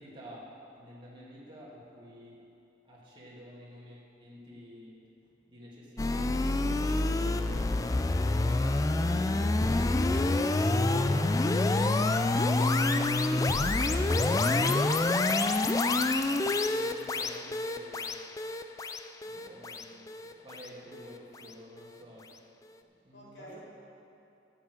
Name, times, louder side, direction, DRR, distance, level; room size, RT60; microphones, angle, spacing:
voice 1, 0.0-2.5 2.8-8.5 8.9-9.8 12.9-14.8 15.0-18.3 19.2-22.3 23.0-23.6, equal, 25° right, -6 dB, 2.3 m, -50 dB
sound 1, 6.0-21.2, left 2 dB, 20° left, 0.3 m, -27 dB
voice 2, 10.0-12.0 23.1-23.6, right 1 dB, 70° left, -5 dB, 2.7 m, -49 dB
10.5 x 7.4 x 7.8 m, 2.7 s
head